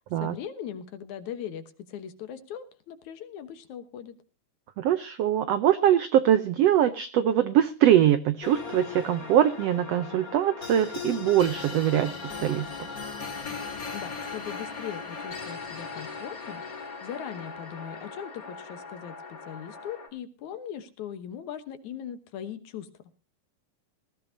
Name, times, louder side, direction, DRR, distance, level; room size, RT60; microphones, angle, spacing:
voice 1, 0.2-4.1 13.9-16.6 17.0-22.9, left 9 dB, 70° left, 10 dB, 2.4 m, -39 dB
voice 2, 4.8-12.2 12.4-12.7, right 11 dB, 80° right, 11 dB, 1.4 m, -22 dB
sound 1, 8.4-20.1, left 5 dB, 30° left, 2.4 m, -38 dB
19.5 x 14.5 x 2.7 m, 0.32 s
omnidirectional pair, 3.8 m